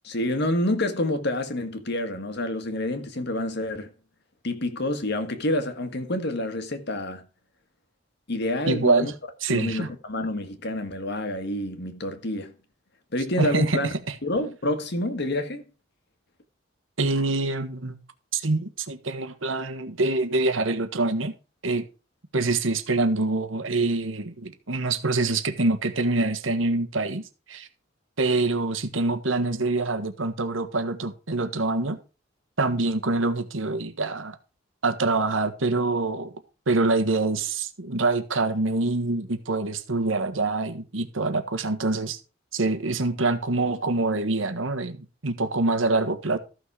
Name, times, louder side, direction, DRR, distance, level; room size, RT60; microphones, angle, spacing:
voice 1, 0.0-3.9 4.4-7.2 8.3-9.1 9.5-12.5 13.1-13.9 14.2-15.6, left 1 dB, 60° left, 1.7 m, -28 dB
voice 2, 8.7-9.1 9.4-9.9 13.4-13.8 14.1-14.2 17.0-17.9 18.3-21.3 21.6-21.9 22.3-27.7 28.2-32.0 32.6-34.4 34.8-36.3 36.7-42.2 42.5-46.4, right 3 dB, 90° right, 1.5 m, -25 dB
14.0 x 6.3 x 4.8 m
head